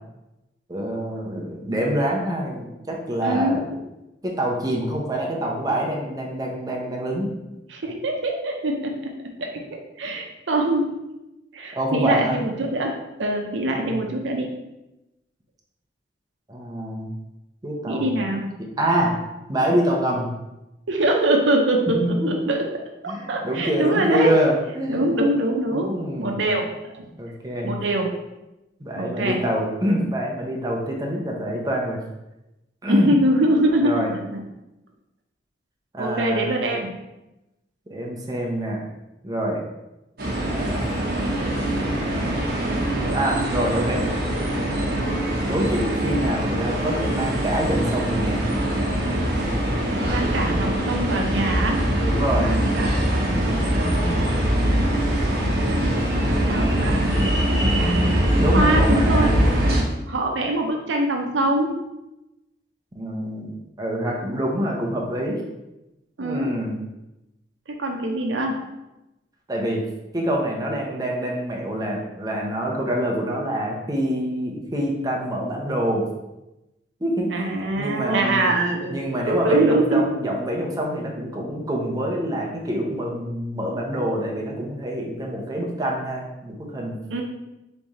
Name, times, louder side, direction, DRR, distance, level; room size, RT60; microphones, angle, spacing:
voice 1, 0.7-3.7 4.2-7.3 11.7-12.4 13.7-14.0 16.5-17.1 17.6-18.1 18.8-19.2 19.5-20.3 22.0-22.3 23.1-25.2 25.7-26.4 27.0-27.8 28.8-32.0 32.8-33.1 33.8-34.1 35.9-36.5 37.9-38.8 39.2-39.6 40.5-40.9 41.8-42.5 42.7-44.0 45.5-48.5 52.0-52.5 58.4-59.4 62.9-63.5 63.8-65.4 66.2-66.8 69.5-69.8 70.1-76.0 77.0-78.5 78.9-87.0, equal, 20° right, -2 dB, 0.7 m, -26 dB
voice 2, 3.2-3.6 7.7-10.9 11.5-14.5 17.9-18.5 20.9-22.0 22.3-22.7 23.0-24.3 24.9-27.1 27.6-28.2 29.0-29.4 32.9-34.4 36.0-37.0 50.1-51.8 52.4-54.3 56.2-59.4 60.1-61.8 66.2-66.5 67.7-68.6 77.3-80.0 87.1-87.2, right 1 dB, 75° right, 2 dB, 0.6 m, -24 dB
sound 1, 40.2-59.8, right 1 dB, 55° right, 0.9 m, -22 dB
3.6 x 3.3 x 4.1 m, 0.96 s
head